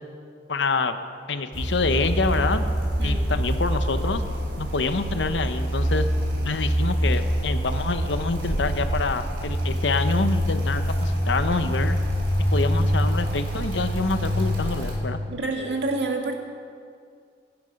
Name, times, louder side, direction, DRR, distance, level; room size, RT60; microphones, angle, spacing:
voice 1, 0.5-1.0 1.3-2.7 3.0-4.2 4.6-6.1 6.4-12.0 12.5-15.2, left 3 dB, 80° left, 9 dB, 0.9 m, -26 dB
sound 1, 1.5-14.9, equal, 90° right, 3.6 m, -25 dB
voice 2, 15.3-16.3, right 2 dB, 70° right, 2 dB, 1.8 m, -27 dB
16.0 x 11.5 x 5.3 m, 2.2 s
head